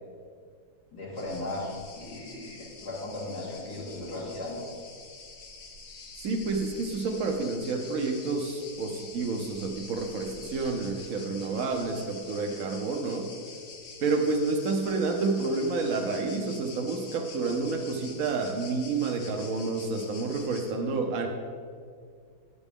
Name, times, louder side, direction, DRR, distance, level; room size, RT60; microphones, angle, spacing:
voice 1, 0.9-4.6, left 2 dB, 75° left, -6 dB, 2.2 m, -37 dB
sound 1, 1.2-20.7, left 4 dB, 55° left, 1.1 m, -46 dB
voice 2, 6.2-13.3 14.0-21.3, right 3 dB, 65° right, 2 dB, 1.0 m, -29 dB
9.1 x 8.2 x 3.6 m, 2.1 s
omnidirectional pair, 1.8 m